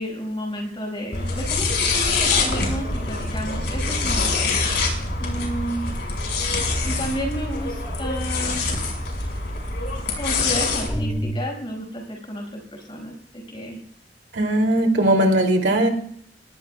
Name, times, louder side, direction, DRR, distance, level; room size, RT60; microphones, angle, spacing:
voice 1, 0.0-4.5 5.2-5.9 6.8-8.7 10.2-13.8, equal, 30° left, 1 dB, 5.6 m, -32 dB
sound 1, 1.1-10.9, left 3 dB, 70° left, 5.5 m, -25 dB
sound 2, 10.9-11.3, equal, 15° left, 1.4 m, -26 dB
voice 2, 14.3-15.9, right 1 dB, 70° right, 2 dB, 2.8 m, -19 dB
24.5 x 20.5 x 2.3 m, 0.65 s
head